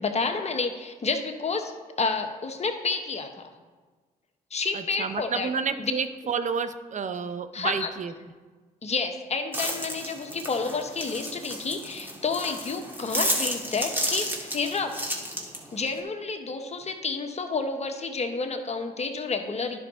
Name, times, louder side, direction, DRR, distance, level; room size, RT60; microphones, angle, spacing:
voice 1, 0.0-1.7 2.0-3.5 4.5-5.5 5.8-5.9 7.5-7.9 8.8-15.0 15.7-19.8, left 4 dB, 35° left, 5 dB, 1.0 m, -30 dB
voice 2, 4.7-8.1, right 6 dB, 45° right, 11 dB, 0.6 m, -30 dB
sound 1, 9.5-16.0, equal, 10° right, 1.8 m, -32 dB
10.5 x 4.8 x 3.7 m, 1.4 s
supercardioid pair, 55°, 18 cm